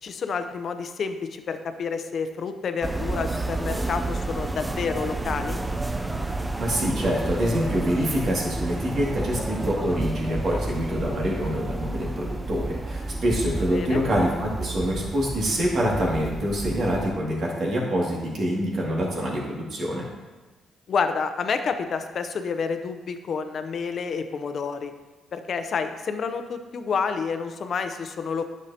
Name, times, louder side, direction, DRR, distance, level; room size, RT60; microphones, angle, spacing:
voice 1, 0.0-5.6 13.7-14.0 20.9-24.9 25.3-28.5, left 5 dB, 55° left, 8 dB, 0.6 m, -29 dB
sound 1, 2.8-17.1, right 2 dB, 15° right, 0.5 m, -30 dB
voice 2, 6.6-20.0, equal, 55° right, -4 dB, 2.3 m, -26 dB
9.7 x 6.4 x 2.9 m, 1.2 s
cardioid pair, 90°, 0 cm